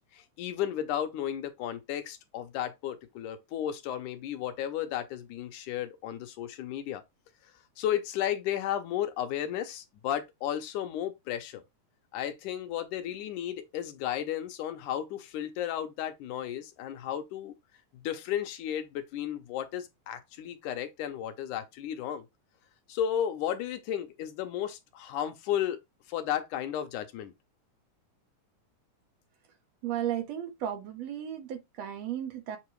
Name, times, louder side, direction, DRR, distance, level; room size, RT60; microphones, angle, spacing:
voice 1, 0.0-7.0 7.8-11.6 12.1-17.5 17.9-22.2 22.9-25.8 26.1-27.3, left 10 dB, 85° left, 2.3 m, -33 dB
voice 2, 29.8-32.6, right 10 dB, 70° right, 1.9 m, -34 dB
7.7 x 2.9 x 4.6 m
omnidirectional pair, 3.5 m